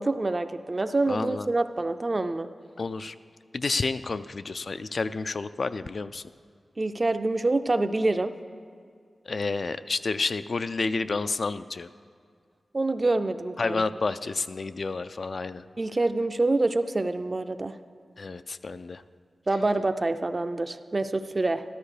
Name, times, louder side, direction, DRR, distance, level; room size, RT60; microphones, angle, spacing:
voice 1, 0.0-2.5 6.8-8.3 12.7-13.8 15.8-17.8 19.5-21.6, right 2 dB, 30° right, 9 dB, 0.4 m, -26 dB
voice 2, 1.1-1.5 2.8-3.1 3.5-6.2 9.3-11.9 13.6-15.6 18.2-19.0, left 3 dB, 55° left, 11 dB, 0.3 m, -30 dB
13.0 x 12.5 x 5.0 m, 2.2 s
wide cardioid pair, 115°, 0 cm